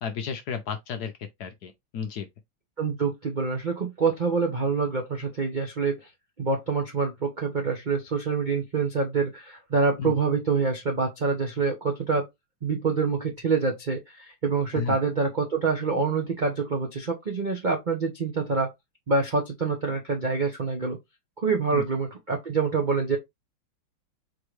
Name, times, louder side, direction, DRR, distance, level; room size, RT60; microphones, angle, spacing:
voice 1, 0.0-1.1 1.4-2.3 10.0-10.1 14.7-15.0 21.7-21.8, left 6 dB, 65° left, 1.0 m, -32 dB
voice 2, 2.8-6.1 6.4-12.3 12.6-18.7 19.1-21.0 21.4-23.2, right 4 dB, 75° right, 0.4 m, -26 dB
4.4 x 3.1 x 3.2 m
omnidirectional pair, 2.2 m